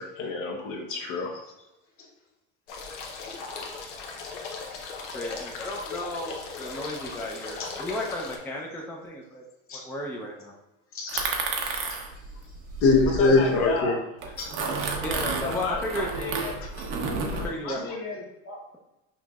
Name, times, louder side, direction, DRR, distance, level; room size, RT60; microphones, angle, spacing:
voice 1, 0.0-1.4 12.8-14.0, left 3 dB, 55° left, 2 dB, 0.8 m, -23 dB
sound 1, 2.7-8.4, left 4 dB, 90° left, 0.8 m, -38 dB
voice 2, 5.1-9.4 9.7-10.5 15.0-16.1 17.3-18.0, left 1 dB, 5° left, -1 dB, 0.5 m, -34 dB
voice 3, 10.9-11.2 11.6-12.0 13.1-14.0 14.4-14.5 15.4-16.9 17.3-18.6, left 3 dB, 40° left, 0 dB, 1.1 m, -35 dB
sound 2, 11.1-13.7 14.2-17.5, right 4 dB, 60° right, 0.8 m, -31 dB
5.7 x 2.6 x 2.3 m, 0.94 s
supercardioid pair, 95°, 35 cm